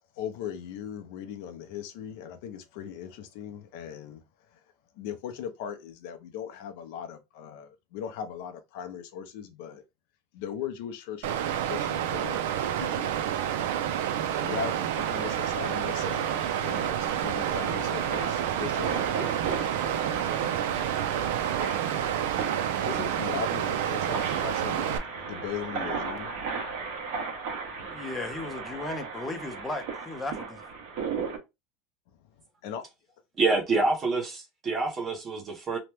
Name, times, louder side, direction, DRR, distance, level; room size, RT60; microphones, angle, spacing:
voice 1, 0.2-4.2 4.5-4.6 5.0-9.8 10.3-13.3 13.8-14.1 14.4-19.6 22.9-26.5 32.6-32.9, left 9 dB, 60° left, 0.5 m, -39 dB
Water, 11.2-25.0, right 10 dB, 85° right, 0.4 m, -29 dB
sound 1, 14.9-31.4, right 5 dB, 55° right, 1.1 m, -36 dB
voice 2, 27.8-30.6, left 2 dB, 10° left, 0.5 m, -36 dB
voice 3, 33.4-35.8, right 3 dB, 20° right, 0.7 m, -27 dB
2.9 x 2.1 x 3.2 m
cardioid pair, 175°, 0 cm